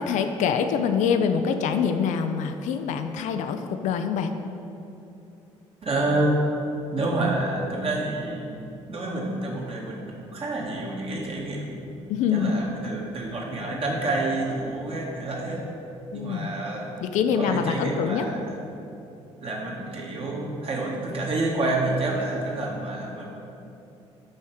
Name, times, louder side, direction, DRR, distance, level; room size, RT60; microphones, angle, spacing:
voice 1, 0.0-4.3 12.1-12.6 16.1-16.5 17.0-18.3, left 6 dB, 55° left, 7 dB, 0.5 m, -25 dB
voice 2, 5.8-6.4 6.9-8.6 8.9-11.9 12.3-15.7 16.1-16.9 17.4-18.5 19.4-23.3, right 2 dB, 40° right, -3 dB, 1.9 m, -28 dB
6.4 x 5.4 x 6.3 m, 2.8 s
figure-of-eight pair, 50°, 15 cm